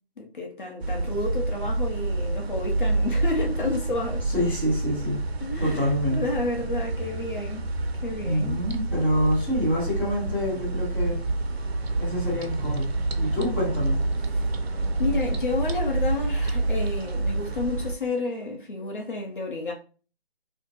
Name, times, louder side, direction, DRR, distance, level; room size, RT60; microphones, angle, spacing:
voice 1, 0.2-4.3 5.4-7.6 8.0-8.6 14.3-14.5 15.0-19.7, left 3 dB, 55° left, 0.7 m, -30 dB
sound 1, 0.8-17.9, right 2 dB, 80° right, 0.6 m, -28 dB
voice 2, 4.3-5.2 5.6-6.2 8.2-11.2 12.0-12.9 13.2-14.0, equal, 10° left, 0.8 m, -26 dB
2.6 x 2.1 x 3.8 m
figure-of-eight pair, 165°, 31 cm